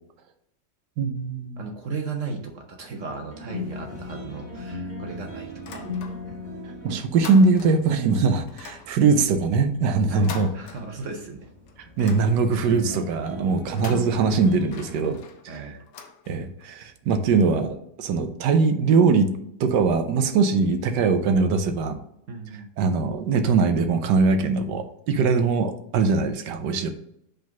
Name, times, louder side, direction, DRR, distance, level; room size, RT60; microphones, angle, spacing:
voice 1, 1.0-1.6 6.8-10.5 12.0-15.2 16.3-19.3 19.6-22.0 22.8-26.9, right 4 dB, 80° right, 8 dB, 1.3 m, -21 dB
voice 2, 1.6-5.9 10.1-11.5 11.8-11.9 15.5-15.8 22.3-22.7, right 4 dB, 55° right, 4 dB, 1.0 m, -36 dB
sound 1, 3.3-15.1, left 2 dB, 25° left, 1.8 m, -38 dB
sound 2, 5.5-6.5 6.8-8.0 8.5-11.3 11.7-12.8 13.6-16.7, left 6 dB, 80° left, 1.5 m, -43 dB
5.2 x 3.9 x 5.7 m, 0.74 s
omnidirectional pair, 1.8 m